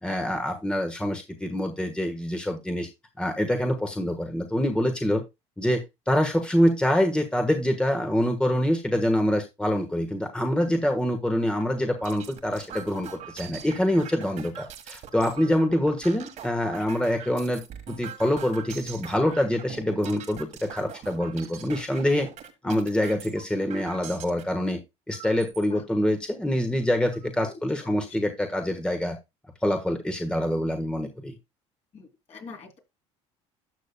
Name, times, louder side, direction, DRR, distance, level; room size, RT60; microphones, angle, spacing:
voice 1, 0.0-2.9 3.2-5.2 5.6-5.8 6.1-17.6 17.9-22.3 22.6-24.8 25.1-29.2 29.6-31.3, left 1 dB, 5° left, 4 dB, 1.4 m, -25 dB
sound 1, 11.6-24.4 25.1-25.7 26.2-26.3 26.6-27.3, right 9 dB, 60° right, 1.7 m, -43 dB
voice 2, 31.9-32.8, left 4 dB, 45° left, 2 dB, 3.4 m, -44 dB
12.5 x 6.5 x 2.3 m, 0.22 s
hypercardioid pair, 70°, 15 cm